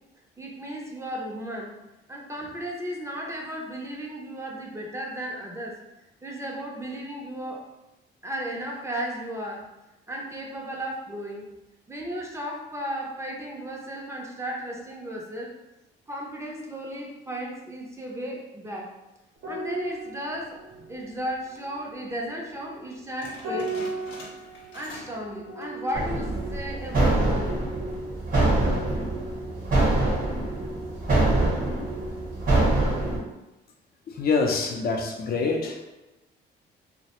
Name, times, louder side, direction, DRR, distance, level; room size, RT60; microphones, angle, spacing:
voice 1, 0.4-1.7 2.1-5.8 6.2-7.7 8.2-9.7 10.1-11.5 11.9-15.5 16.1-18.9 19.5-20.6 20.9-23.9 24.7-27.6, equal, 15° right, -1 dB, 0.5 m, -34 dB
sound 1, 19.4-28.1 28.4-28.6, right 2 dB, 75° right, 0.7 m, -38 dB
sound 2, 23.2-25.2 25.5-25.9 26.3-26.4 27.1-27.5, left 2 dB, 75° left, 0.8 m, -45 dB
sound 3, 25.9-33.2, right 2 dB, 45° right, 0.9 m, -24 dB
voice 2, 34.1-35.9, left 4 dB, 50° left, 2 dB, 0.4 m, -26 dB
2.3 x 2.1 x 2.9 m, 1.0 s
cardioid pair, 90°, 20 cm